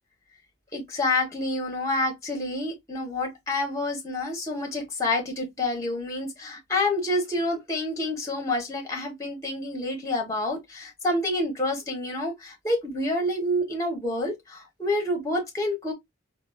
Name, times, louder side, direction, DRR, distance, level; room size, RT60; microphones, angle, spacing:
voice 1, 0.7-15.9, left 1 dB, 15° left, 0.9 m, -28 dB
3.8 x 2.1 x 2.3 m
head